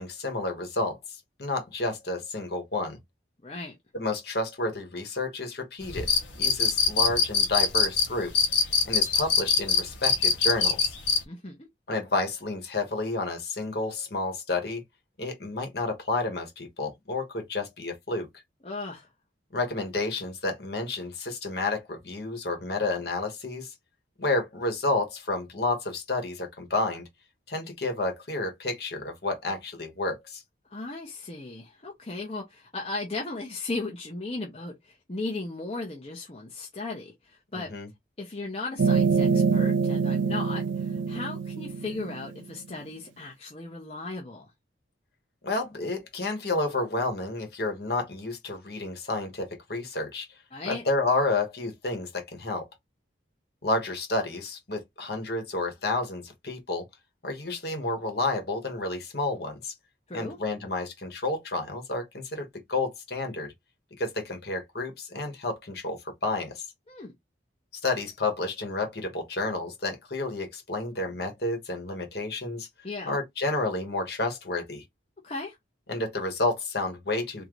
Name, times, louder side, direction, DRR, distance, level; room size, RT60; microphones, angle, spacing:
voice 1, 0.0-3.0 3.9-8.5 8.8-10.9 11.9-14.8 15.2-18.3 19.5-23.7 24.2-27.0 27.5-30.4 37.5-37.9 45.4-50.3 50.7-52.7 53.6-56.8 57.2-59.7 60.1-63.5 64.0-66.6 67.8-72.7 73.0-74.8 75.9-77.5, left 2 dB, 55° left, 1.4 m, -30 dB
voice 2, 3.4-3.8 11.3-11.6 18.6-19.1 30.7-37.7 38.2-44.5 50.5-50.8 60.1-60.4 66.9-67.1 72.8-73.2 75.2-75.6, left 3 dB, 30° left, 0.9 m, -36 dB
sound 1, 5.8-11.2, left 6 dB, 85° left, 1.3 m, -23 dB
sound 2, 38.8-42.4, right 5 dB, 85° right, 0.4 m, -25 dB
3.8 x 2.9 x 3.1 m
head